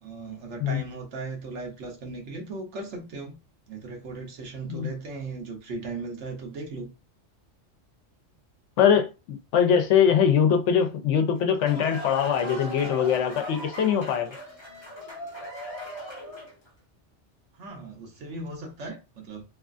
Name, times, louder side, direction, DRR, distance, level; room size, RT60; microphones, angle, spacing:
voice 1, 0.0-3.4 3.7-6.9 17.6-19.4, right 3 dB, 80° right, 1.1 m, -37 dB
voice 2, 8.8-14.3, left 8 dB, 90° left, 0.9 m, -22 dB
sound 1, 11.3-16.7, equal, 25° left, 1.0 m, -39 dB
3.0 x 2.3 x 2.4 m
omnidirectional pair, 1.2 m